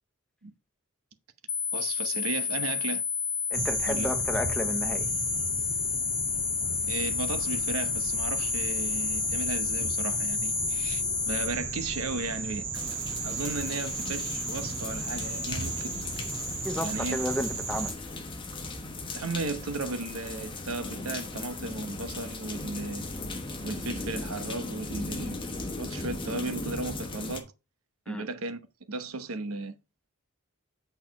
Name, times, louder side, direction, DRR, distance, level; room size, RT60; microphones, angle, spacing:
sound 1, 1.5-11.5, left 7 dB, 45° left, 1.2 m, -30 dB
voice 1, 1.7-3.0 3.9-4.1 6.8-16.0 16.8-17.2 19.1-23.1 23.6-25.4 25.8-27.5 28.1-28.6 28.9-29.7, right 3 dB, 85° right, 1.0 m, -35 dB
voice 2, 3.5-5.1 16.6-17.9 28.1-28.3, equal, 5° left, 0.6 m, -32 dB
sound 2, 3.5-17.9, right 3 dB, 30° right, 2.9 m, -34 dB
sound 3, 12.7-27.4, left 2 dB, 25° left, 1.2 m, -38 dB
8.4 x 4.4 x 4.7 m
head